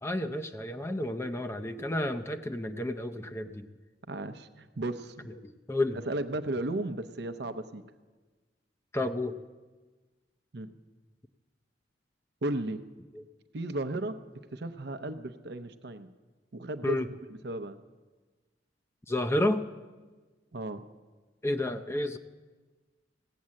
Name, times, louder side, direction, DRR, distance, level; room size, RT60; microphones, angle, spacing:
voice 1, 0.0-3.7 5.7-6.0 8.9-9.4 16.8-17.1 19.1-19.6 21.4-22.2, left 1 dB, 15° left, 7 dB, 0.5 m, -30 dB
voice 2, 4.1-5.3 6.1-7.8 10.5-10.7 12.4-12.8 13.5-14.2 14.5-16.1 16.5-17.0 17.3-17.8 20.5-20.8, right 2 dB, 65° right, 10 dB, 0.7 m, -35 dB
16.5 x 8.5 x 7.6 m, 1.3 s
head